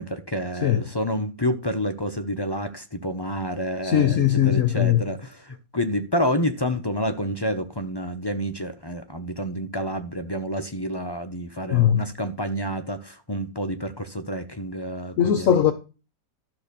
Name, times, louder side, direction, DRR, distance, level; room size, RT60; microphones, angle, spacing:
voice 1, 0.0-15.6, equal, 30° left, 0.4 m, -29 dB
voice 2, 3.8-5.1 11.7-12.1 15.2-15.7, left 10 dB, 60° left, 1.0 m, -20 dB
12.5 x 4.2 x 6.8 m
omnidirectional pair, 1.8 m